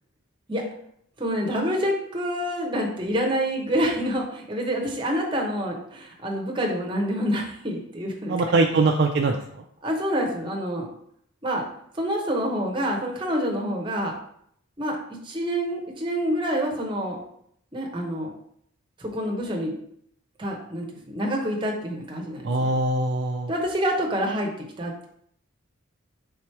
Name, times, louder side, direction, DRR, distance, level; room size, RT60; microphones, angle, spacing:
voice 1, 1.2-8.5 9.8-10.9 11.4-11.6 11.9-14.1 14.8-15.0 15.2-17.2 17.7-18.3 19.0-19.8 20.4-22.7 23.5-24.5 24.8-25.1, equal, 25° right, 1 dB, 0.7 m, -27 dB
voice 2, 8.3-9.6 22.4-23.5, right 3 dB, 50° right, 2 dB, 0.3 m, -22 dB
3.5 x 3.0 x 4.5 m, 0.69 s
head